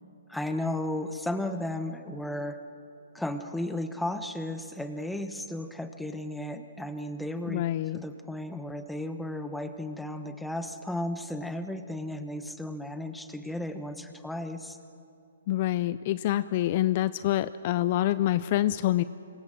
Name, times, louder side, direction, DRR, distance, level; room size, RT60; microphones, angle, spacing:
voice 1, 0.3-2.6 3.1-7.6 7.9-14.8, left 1 dB, ahead, 8 dB, 1.0 m, -34 dB
voice 2, 7.5-8.0 15.5-19.0, left 14 dB, 35° left, 15 dB, 0.4 m, -26 dB
26.0 x 22.5 x 6.3 m, 2.8 s
hypercardioid pair, 160°, 0 cm